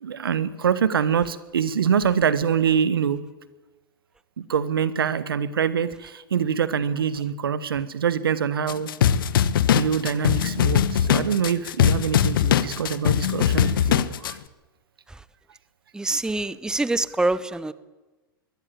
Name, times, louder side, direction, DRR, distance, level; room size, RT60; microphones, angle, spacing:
voice 1, 0.0-3.2 4.4-8.9 9.7-14.4, right 7 dB, 80° right, 15 dB, 1.4 m, -24 dB
sound 1, 8.7-14.3, left 9 dB, 70° left, 1.2 m, -21 dB
voice 2, 15.9-17.7, right 2 dB, 5° right, 16 dB, 0.9 m, -25 dB
22.5 x 17.5 x 8.7 m, 1.2 s
hypercardioid pair, 95°, 12 cm